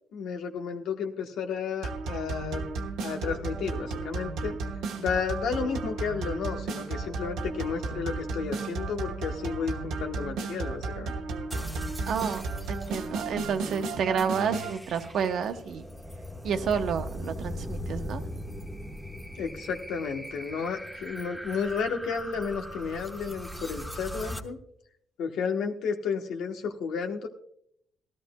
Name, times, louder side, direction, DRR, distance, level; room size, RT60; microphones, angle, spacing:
voice 1, 0.1-2.6 3.0-4.6 5.0-11.1 19.4-24.6 25.2-27.3, left 6 dB, 80° left, 4 dB, 1.1 m, -32 dB
sound 1, 1.8-14.8, right 3 dB, 90° right, 1.2 m, -34 dB
sound 2, 11.5-24.4, equal, 5° right, 1.1 m, -40 dB
voice 2, 12.1-12.4 12.7-15.8 16.4-18.2, right 6 dB, 70° right, 7 dB, 1.0 m, -30 dB
17.0 x 12.5 x 2.3 m, 0.70 s
cardioid pair, 90°, 0 cm